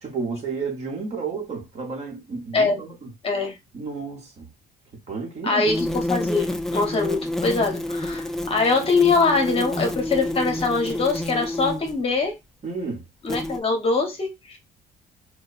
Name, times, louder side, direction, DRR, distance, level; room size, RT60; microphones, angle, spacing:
voice 1, 0.0-3.1 3.7-4.5 5.1-5.7 12.6-13.1, right 4 dB, 40° right, 1.1 m, -31 dB
voice 2, 3.2-3.5 5.4-12.3 13.2-14.6, left 4 dB, 35° left, 0.9 m, -23 dB
sound 1, 5.7-12.0 13.3-13.6, left 1 dB, ahead, 0.3 m, -29 dB
2.9 x 2.2 x 2.5 m
cardioid pair, 110°, 17 cm